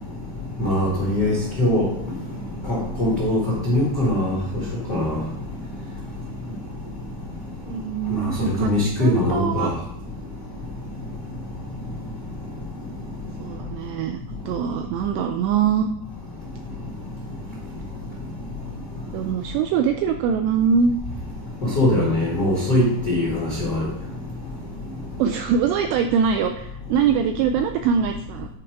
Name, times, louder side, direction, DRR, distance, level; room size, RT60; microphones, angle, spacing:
voice 1, 0.6-1.9 2.7-4.4 4.9-5.2 8.1-9.7 21.7-23.9, left 1 dB, 80° left, -5 dB, 0.9 m, -21 dB
voice 2, 7.7-8.7 9.0-9.7 13.4-14.2 14.5-15.9 19.1-20.9 25.2-28.5, right 7 dB, 90° right, 6 dB, 2.5 m, -23 dB
9.8 x 4.8 x 4.6 m, 0.81 s
omnidirectional pair, 5.5 m